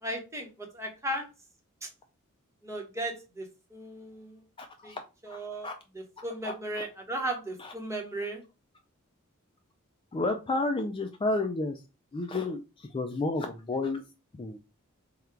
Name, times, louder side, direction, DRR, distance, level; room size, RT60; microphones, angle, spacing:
voice 1, 0.0-1.3 1.8-1.9 2.6-4.4 4.8-4.9 5.2-5.7 6.2-8.4, right 1 dB, 15° right, 0.9 m, -36 dB
voice 2, 4.6-5.4 5.6-5.7 6.2-6.8 7.6-7.7 10.1-11.8 12.1-14.0 14.4-14.6, left 2 dB, 25° left, 0.3 m, -32 dB
3.6 x 2.2 x 4.4 m
head